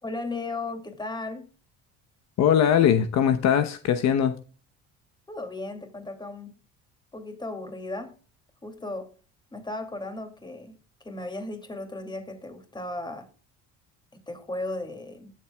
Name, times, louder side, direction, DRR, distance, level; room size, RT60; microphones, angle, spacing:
voice 1, 0.0-1.4 5.3-6.6 7.1-8.1 8.6-9.1 9.5-10.8 11.0-13.3 14.3-15.3, left 2 dB, 15° left, 2.6 m, -35 dB
voice 2, 2.4-4.4, left 9 dB, 60° left, 1.0 m, -21 dB
19.5 x 7.5 x 2.3 m
cardioid pair, 125°, 30 cm